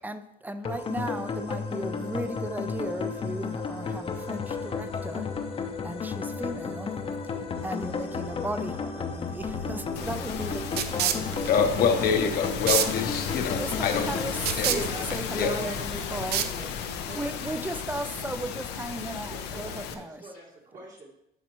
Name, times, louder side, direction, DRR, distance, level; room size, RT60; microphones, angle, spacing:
voice 1, 0.0-5.3 5.8-6.9 7.6-12.0 13.5-16.5 17.0-20.3, right 1 dB, 10° right, 10 dB, 0.5 m, -36 dB
sound 1, 0.6-15.7, left 5 dB, 35° left, 0.8 m, -33 dB
sound 2, 9.4-17.0, right 9 dB, 70° right, 0.6 m, -32 dB
sound 3, 9.9-19.9, left 8 dB, 90° left, 0.7 m, -35 dB
voice 2, 11.5-14.1 14.6-14.7 15.3-15.5, left 6 dB, 65° left, 5 dB, 1.0 m, -25 dB
voice 3, 14.7-15.1 15.4-17.2 19.2-21.1, right 2 dB, 50° right, -4 dB, 1.9 m, -40 dB
11.5 x 4.2 x 3.0 m, 0.82 s
cardioid pair, 110°, 17 cm